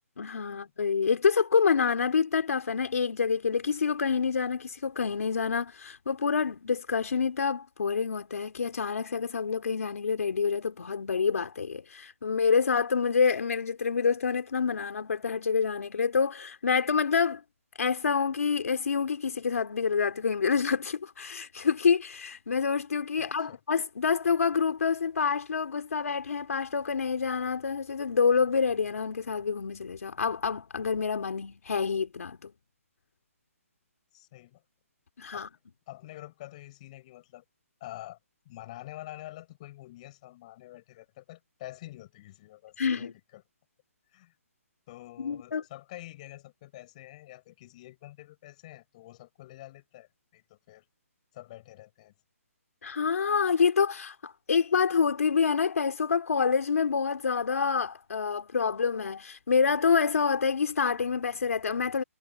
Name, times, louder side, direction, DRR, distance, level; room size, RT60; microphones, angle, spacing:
voice 1, 0.2-17.4 17.8-32.5 35.2-35.5 42.8-43.1 45.2-45.6 52.8-62.0, left 5 dB, 75° left, 2.6 m, -27 dB
voice 2, 23.2-23.6 34.1-34.6 35.3-37.4 37.8-38.2 38.5-43.4 44.1-44.4 44.9-50.8 51.3-52.1, left 16 dB, 30° left, 7.2 m, -47 dB
hypercardioid pair, 165°, 8 cm